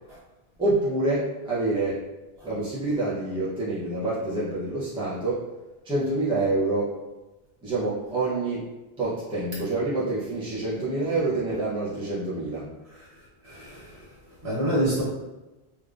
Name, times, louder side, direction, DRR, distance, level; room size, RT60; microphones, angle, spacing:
voice 1, 0.6-2.1 2.4-5.5 5.8-7.0 7.6-8.7 9.0-12.7, right 2 dB, 5° right, -10 dB, 0.5 m, -27 dB
voice 2, 13.4-14.0 14.4-15.0, right 1 dB, 85° right, -8 dB, 1.4 m, -26 dB
3.3 x 2.5 x 2.4 m, 1.1 s
omnidirectional pair, 1.1 m